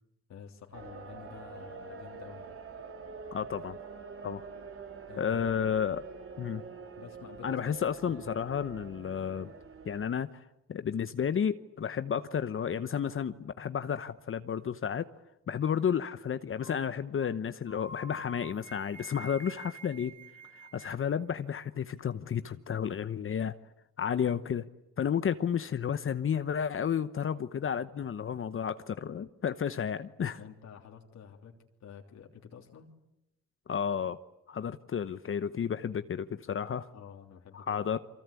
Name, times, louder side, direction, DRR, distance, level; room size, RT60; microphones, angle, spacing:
voice 1, 0.3-2.5 5.1-5.4 7.0-8.6 30.4-31.5 31.8-32.9 36.9-37.6, left 7 dB, 65° left, 2 dB, 3.2 m, -49 dB
sound 1, 0.7-10.1, right 5 dB, 45° right, 3.2 m, -46 dB
voice 2, 3.3-3.8 4.2-4.5 5.2-6.0 6.4-6.6 7.4-9.5 9.8-15.1 15.5-20.1 20.5-23.5 24.0-24.7 25.0-30.4 33.7-34.2 34.5-36.9 37.5-38.0, left 8 dB, 45° left, 11 dB, 1.0 m, -32 dB
sound 2, 16.6-16.9 17.2-17.4 17.7-21.0, right 1 dB, 25° right, 3.3 m, -48 dB
30.0 x 24.0 x 8.4 m, 0.87 s
cardioid pair, 90°, 30 cm